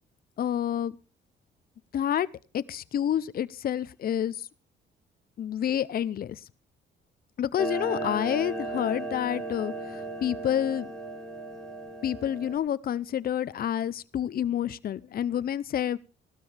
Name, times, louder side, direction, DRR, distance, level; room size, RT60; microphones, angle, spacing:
voice 1, 0.4-0.9 1.9-2.3 2.5-4.4 5.4-6.4 7.4-10.9 12.0-16.0, left 10 dB, 50° left, 16 dB, 0.6 m, -28 dB
Clock, 7.6-12.6, right 2 dB, 5° left, 2.2 m, -35 dB
17.0 x 12.5 x 3.3 m, 0.35 s
cardioid pair, 90°, 20 cm